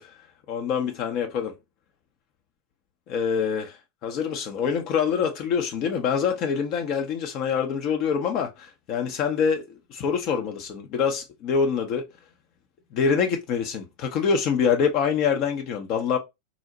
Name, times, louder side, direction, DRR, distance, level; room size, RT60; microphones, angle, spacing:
voice 1, 0.5-1.6 3.1-12.1 12.9-16.2, left 6 dB, 40° left, 0.5 m, -25 dB
3.9 x 2.0 x 2.7 m
figure-of-eight pair, 90°, 0 cm